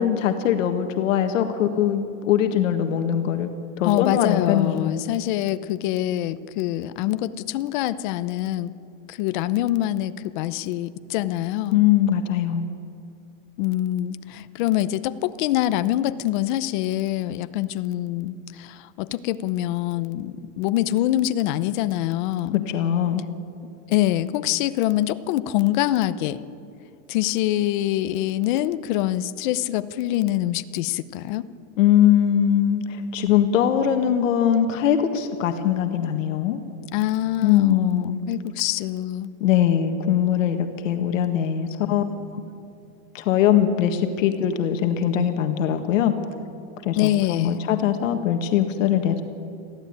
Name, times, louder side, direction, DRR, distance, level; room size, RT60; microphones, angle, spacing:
voice 1, 0.0-3.5 3.8-4.9 11.7-12.7 22.5-23.2 31.8-36.6 37.4-38.2 39.4-42.0 43.1-46.1 46.8-49.2, left 10 dB, 70° left, 6 dB, 1.7 m, -21 dB
voice 2, 3.8-8.7 9.1-11.8 13.6-22.6 23.9-26.4 27.1-31.5 36.9-39.3 47.0-47.6, left 14 dB, 35° left, 14 dB, 0.7 m, -25 dB
21.5 x 15.5 x 8.8 m, 2.4 s
supercardioid pair, 165°, 40 cm